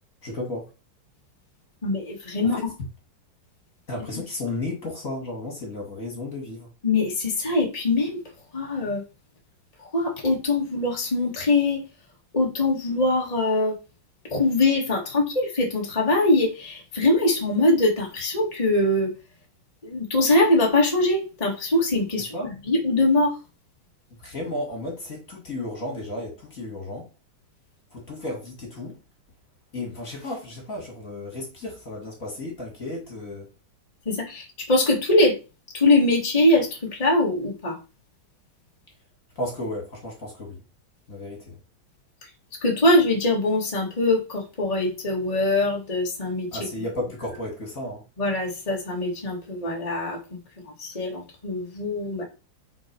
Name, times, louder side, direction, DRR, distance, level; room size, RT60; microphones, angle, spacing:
voice 1, 0.2-0.7 2.6-2.7 3.9-6.7 22.3-22.5 24.2-27.1 27.9-29.0 29.7-33.5 39.4-40.6 41.1-41.6 46.5-48.0, left 1 dB, 40° left, 2.7 m, -33 dB
voice 2, 1.8-2.6 6.8-8.2 8.5-9.0 9.8-11.8 12.3-13.8 14.3-19.1 19.8-22.3 22.6-23.4 34.1-35.4 35.7-37.8 42.6-46.6 48.2-50.2 50.6-52.2, left 2 dB, 20° left, 2.2 m, -22 dB
8.5 x 4.6 x 4.7 m
omnidirectional pair, 2.3 m